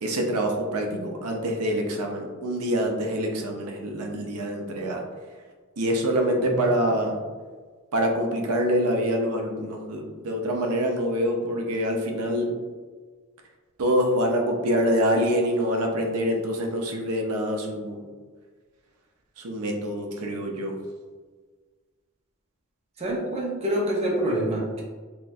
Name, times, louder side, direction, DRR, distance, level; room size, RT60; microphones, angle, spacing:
voice 1, 0.0-5.0 5.8-7.2 7.9-12.5 13.8-18.0 19.4-20.8, equal, 85° right, 1 dB, 0.6 m, -25 dB
voice 2, 23.0-24.8, right 1 dB, 30° right, -3 dB, 0.8 m, -26 dB
4.1 x 2.8 x 2.4 m, 1.4 s
head